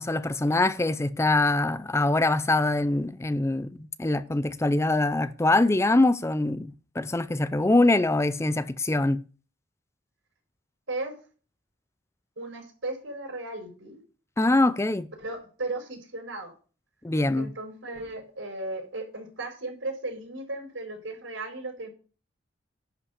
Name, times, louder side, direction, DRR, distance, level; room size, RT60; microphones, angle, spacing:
voice 1, 0.0-9.2 14.4-15.1 17.0-17.5, left 2 dB, 15° left, 0.4 m, -24 dB
voice 2, 12.4-14.0 15.2-16.5 17.4-21.9, right 2 dB, 85° right, 5.0 m, -36 dB
11.0 x 5.6 x 8.0 m
head